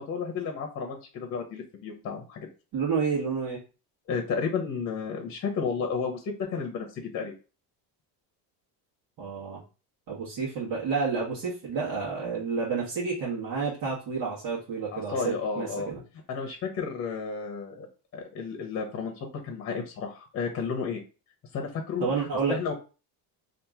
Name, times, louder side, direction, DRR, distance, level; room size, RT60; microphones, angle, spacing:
voice 1, 0.0-2.5 4.1-7.3 14.9-15.9 16.3-17.9 18.1-21.0 21.5-22.1 22.5-22.8, left 5 dB, 35° left, 2 dB, 0.8 m, -32 dB
voice 2, 2.7-3.6 9.2-9.6 10.1-16.0 22.0-22.6, right 5 dB, 65° right, -7 dB, 1.3 m, -30 dB
2.9 x 2.6 x 3.5 m, 0.33 s
cardioid pair, 150°, 38 cm